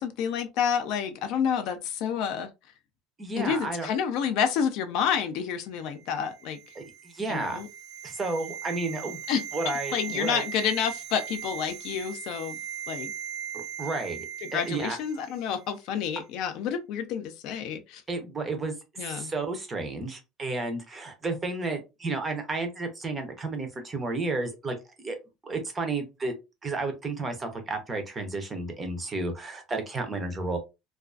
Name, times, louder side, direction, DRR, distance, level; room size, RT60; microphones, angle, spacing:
voice 1, 0.0-2.5 3.4-6.6 7.3-7.7 9.3-9.4 9.9-12.6 12.9-13.1 14.4-18.0 19.0-19.3, left 7 dB, 55° left, 0.4 m, -29 dB
voice 2, 3.2-3.9 6.8-6.9 7.1-7.6 8.0-9.2 9.5-10.4 13.5-15.0 18.1-18.7 19.0-24.8 25.0-26.3 26.6-30.6, right 3 dB, 15° right, 0.5 m, -32 dB
sound 1, 6.0-15.3 15.5-15.7, right 9 dB, 55° right, 0.6 m, -39 dB
2.4 x 2.3 x 2.3 m
cardioid pair, 175°, 0 cm